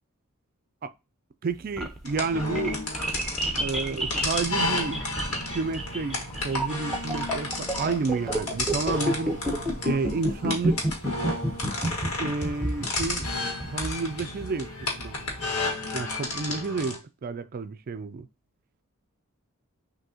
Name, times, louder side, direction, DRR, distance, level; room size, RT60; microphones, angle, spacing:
voice 1, 1.4-2.8 3.6-6.2 6.4-9.3 9.8-10.9 12.2-13.3 13.7-14.7 15.0-15.1 15.9-18.3, right 4 dB, 40° right, 0.4 m, -30 dB
sound 1, 1.5-15.6, right 1 dB, ahead, 0.8 m, -30 dB
sound 2, 2.1-17.0, left 2 dB, 70° left, 1.7 m, -32 dB
6.2 x 2.7 x 2.8 m
head